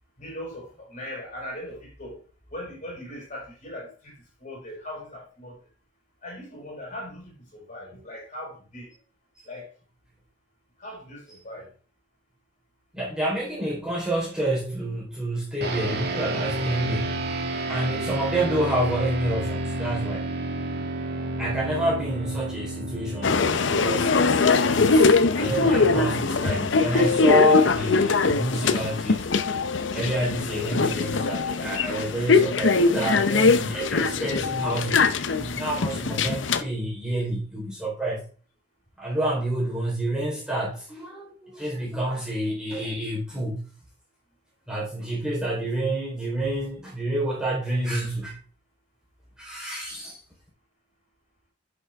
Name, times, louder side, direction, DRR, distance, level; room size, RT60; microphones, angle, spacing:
voice 1, 0.2-2.2 2.5-5.6 6.2-8.9 9.4-9.7 10.8-11.7, left 1 dB, 40° left, -2 dB, 5.5 m, -39 dB
voice 2, 12.9-17.2 17.7-20.3 21.4-24.1 24.6-29.2 29.7-38.2 39.0-43.7 44.7-48.4 49.4-50.2, right 1 dB, 5° right, -6 dB, 3.9 m, -28 dB
sound 1, 15.6-25.2, right 2 dB, 60° right, 1.8 m, -31 dB
sound 2, 23.2-36.6, left 4 dB, 80° left, 0.7 m, -22 dB
11.0 x 6.2 x 3.5 m, 0.38 s
head